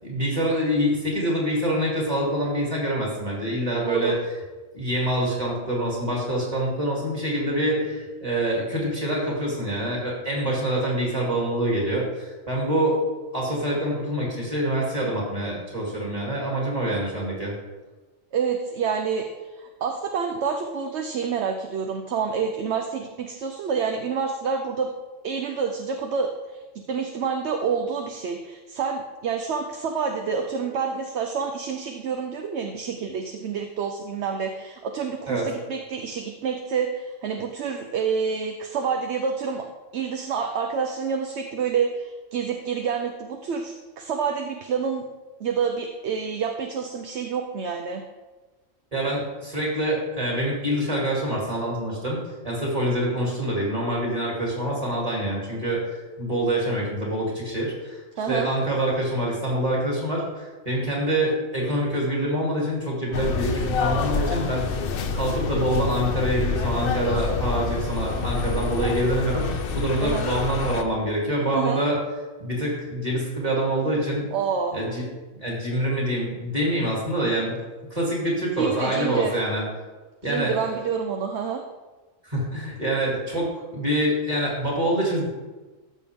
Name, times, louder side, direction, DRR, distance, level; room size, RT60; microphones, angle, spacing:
voice 1, 0.0-4.1 4.7-13.0 13.3-17.5 35.3-35.5 48.9-52.2 52.4-55.8 56.2-58.0 58.3-64.7 65.1-72.0 72.4-74.3 74.7-75.0 75.4-77.6 77.9-79.6 80.2-80.6 82.2-85.3, right 1 dB, 25° right, -4 dB, 3.1 m, -25 dB
voice 2, 3.8-4.1 18.3-24.9 25.2-26.6 26.9-39.6 39.9-45.0 45.4-48.0 58.2-58.5 70.0-70.3 71.5-71.8 74.3-74.8 78.6-79.3 80.2-81.6, right 6 dB, 60° right, 4 dB, 1.0 m, -28 dB
sound 1, 63.1-70.8, left 5 dB, 55° left, 0.8 m, -27 dB
14.0 x 6.5 x 3.6 m, 1.2 s
omnidirectional pair, 1.4 m